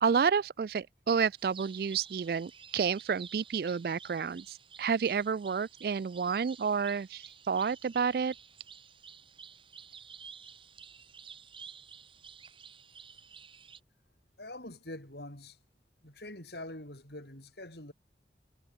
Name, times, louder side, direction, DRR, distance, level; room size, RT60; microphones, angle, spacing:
voice 1, 0.0-8.3, right 6 dB, 55° right, 0.3 m, -30 dB
sound 1, 1.4-13.8, right 7 dB, 30° right, 3.5 m, -52 dB
voice 2, 14.4-15.6 16.0-17.9, left 1 dB, 70° left, 6.6 m, -44 dB
head